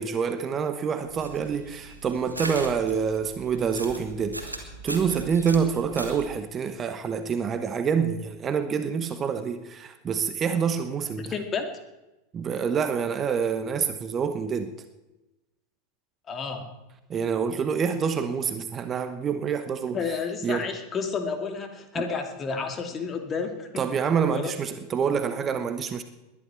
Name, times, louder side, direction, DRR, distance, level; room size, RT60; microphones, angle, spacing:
voice 1, 0.0-11.3 12.3-14.7 17.1-20.0 20.4-20.7 22.0-22.1 23.8-26.0, right 6 dB, 25° right, 1.0 m, -27 dB
sound 1, 1.0-6.3, right 2 dB, 90° right, 1.9 m, -39 dB
voice 2, 11.2-11.6 16.3-16.7 19.9-23.7 24.3-24.5, left 5 dB, 25° left, 2.4 m, -31 dB
20.5 x 11.5 x 4.7 m
figure-of-eight pair, 85°, 0 cm